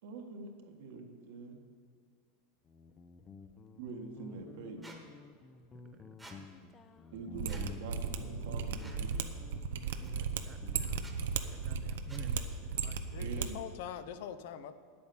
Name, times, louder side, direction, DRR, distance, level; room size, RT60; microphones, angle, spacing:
voice 1, 0.0-1.6 3.7-4.8 7.1-9.2 13.2-13.6, right 3 dB, 75° right, 3 dB, 1.6 m, -45 dB
Guitar, 2.7-11.1, left 4 dB, 20° left, 0.6 m, -52 dB
Squeak, 4.8-5.0 6.2-6.4 7.4-7.7 8.8-9.0 10.0-10.1 10.9-11.1 12.1-12.3, right 2 dB, 5° right, 1.3 m, -52 dB
Mechanisms, 7.3-13.5 13.7-13.8, right 6 dB, 90° right, 0.7 m, -35 dB
voice 2, 9.8-11.1 11.5-13.0, right 6 dB, 25° right, 8 dB, 0.4 m, -52 dB
voice 3, 13.0-14.7, left 9 dB, 65° left, 12 dB, 0.7 m, -43 dB
9.5 x 8.6 x 7.0 m, 2.1 s
supercardioid pair, 145°, 0 cm